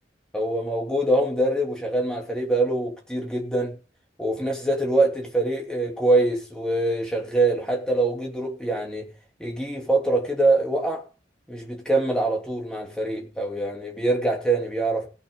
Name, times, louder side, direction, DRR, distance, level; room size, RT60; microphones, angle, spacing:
voice 1, 0.3-3.8 4.2-9.1 9.4-11.0 11.5-15.1, right 2 dB, 5° left, 3.0 m, -24 dB
17.0 x 5.9 x 5.6 m
head